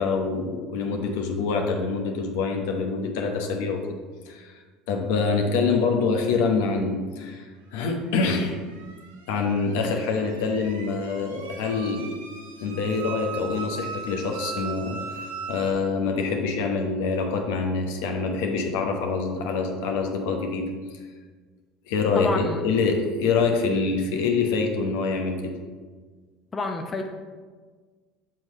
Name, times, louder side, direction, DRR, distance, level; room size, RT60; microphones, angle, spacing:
voice 1, 0.0-3.8 4.3-4.6 4.9-7.5 7.7-8.6 9.3-12.2 12.6-21.0 21.9-25.5, left 4 dB, 75° left, 3 dB, 0.9 m, -25 dB
sound 1, 8.1-15.7, right 6 dB, 90° right, 0.8 m, -39 dB
voice 2, 22.2-22.6 26.5-27.1, left 3 dB, 30° left, 4 dB, 0.6 m, -29 dB
7.5 x 3.2 x 5.3 m, 1.5 s
hypercardioid pair, 80°, 0 cm